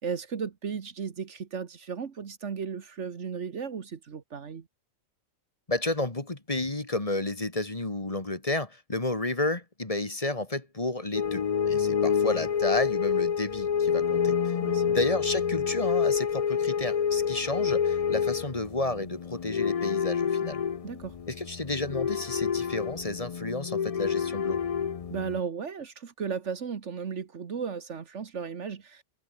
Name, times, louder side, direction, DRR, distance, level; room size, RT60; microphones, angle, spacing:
voice 1, 0.0-4.7 14.6-15.0 20.8-21.1 25.1-29.0, right 6 dB, 65° right, 1.6 m, -35 dB
voice 2, 5.7-14.5 14.9-20.6 21.3-24.6, left 2 dB, 30° left, 2.2 m, -31 dB
sound 1, 11.1-25.4, left 7 dB, 45° left, 0.5 m, -28 dB
omnidirectional pair, 1.3 m